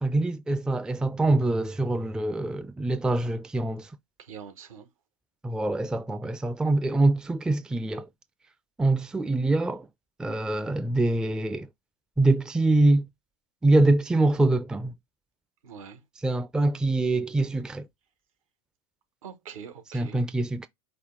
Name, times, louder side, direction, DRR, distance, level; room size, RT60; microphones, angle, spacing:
voice 1, 0.0-3.9 5.4-8.1 8.8-9.9 10.2-11.7 12.2-13.1 13.6-14.9 16.2-17.9 19.9-20.7, right 2 dB, 5° right, 0.4 m, -24 dB
voice 2, 4.2-4.9 15.6-16.0 19.2-20.2, right 7 dB, 75° right, 1.2 m, -43 dB
5.4 x 2.2 x 3.7 m
hypercardioid pair, 90°, 18 cm